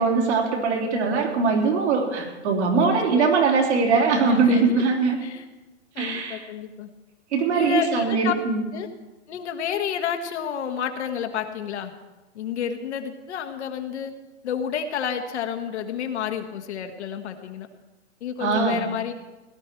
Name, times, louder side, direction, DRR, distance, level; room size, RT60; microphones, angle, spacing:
voice 1, 0.0-5.2 6.0-6.5 7.3-8.6 18.4-18.8, right 4 dB, 70° right, -1 dB, 3.6 m, -21 dB
voice 2, 2.7-3.3 4.3-4.8 5.2-5.4 5.9-6.9 7.5-8.3 8.7-8.9 9.3-11.9 12.3-14.1 14.4-17.7 18.2-19.1, left 8 dB, 70° left, 6 dB, 1.6 m, -30 dB
17.5 x 11.0 x 4.6 m, 1.2 s
hypercardioid pair, 135°, 35 cm